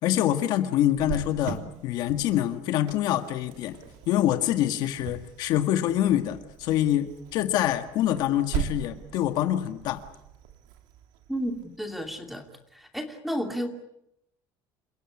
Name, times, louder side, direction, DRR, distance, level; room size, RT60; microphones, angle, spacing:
voice 1, 0.0-10.0, left 12 dB, 60° left, 8 dB, 1.7 m, -25 dB
Cricket, 1.0-12.4, right 10 dB, 75° right, 3.1 m, -40 dB
voice 2, 11.3-12.5 12.7-13.7, equal, ahead, 5 dB, 2.7 m, -32 dB
29.0 x 17.0 x 9.7 m, 0.79 s
cardioid pair, 160°, 8 cm